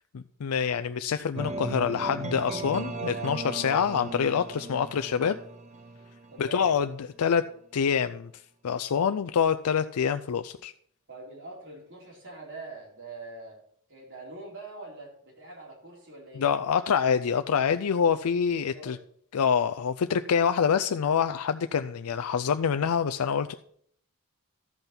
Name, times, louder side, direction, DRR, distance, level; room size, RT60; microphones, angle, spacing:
voice 1, 0.1-5.4 6.4-7.5 7.7-8.3 8.6-10.7 16.4-19.0 19.3-23.5, left 7 dB, 70° left, 10 dB, 0.4 m, -26 dB
sound 1, 1.4-7.3, right 3 dB, 30° right, 0.8 m, -37 dB
voice 2, 6.3-6.7 11.1-13.6 13.9-16.5 18.7-19.0, right 2 dB, 55° right, -2 dB, 4.1 m, -44 dB
13.5 x 5.6 x 5.9 m, 0.63 s
head